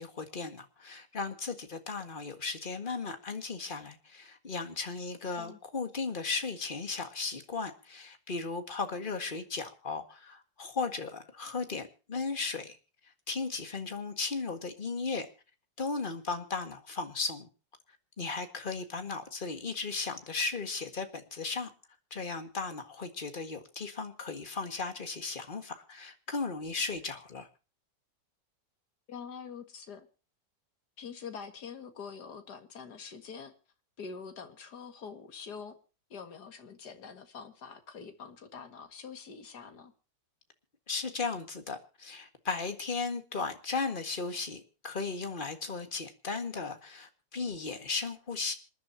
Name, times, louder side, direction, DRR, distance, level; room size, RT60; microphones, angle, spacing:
voice 1, 0.0-12.8 13.3-15.3 15.8-17.5 18.2-21.7 22.1-27.5 40.9-48.5, left 4 dB, 30° left, 1.8 m, -36 dB
voice 2, 29.1-30.1 31.0-33.5 34.0-35.8 36.1-39.9, left 6 dB, 60° left, 2.3 m, -45 dB
27.0 x 11.0 x 2.7 m
omnidirectional pair, 2.0 m